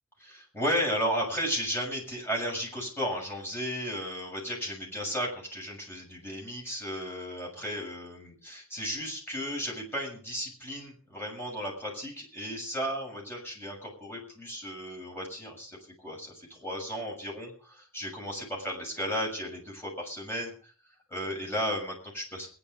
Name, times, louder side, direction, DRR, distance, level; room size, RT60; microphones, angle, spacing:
voice 1, 0.2-20.7 21.1-22.5, equal, 10° left, -1 dB, 6.8 m, -34 dB
22.0 x 10.5 x 5.4 m, 0.41 s
head